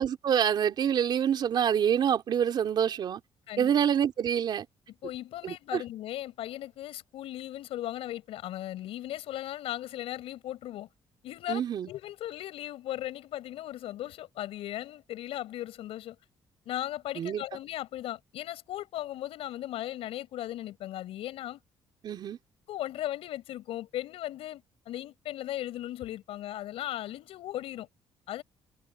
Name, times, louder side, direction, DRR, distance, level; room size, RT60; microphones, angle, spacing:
voice 1, 0.0-3.2 3.6-4.7 5.4-5.8 11.5-11.9 17.2-17.4 22.0-22.4, right 8 dB, 50° right, 3.9 m, -26 dB
voice 2, 5.0-10.9 11.2-16.2 16.6-21.6 22.7-27.9 28.3-28.4, left 13 dB, 80° left, 6.3 m, -37 dB
cardioid pair, 150°, 10 cm